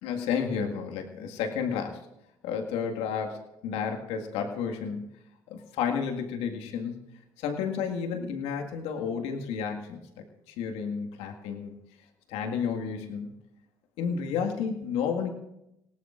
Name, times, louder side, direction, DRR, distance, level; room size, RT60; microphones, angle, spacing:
voice 1, 0.0-2.0 2.4-5.1 5.5-7.0 7.4-10.0 10.5-11.7 12.3-13.3 14.0-15.3, left 6 dB, 70° left, 3 dB, 2.0 m, -31 dB
26.0 x 18.0 x 2.6 m, 0.85 s
hypercardioid pair, 65°, 11 cm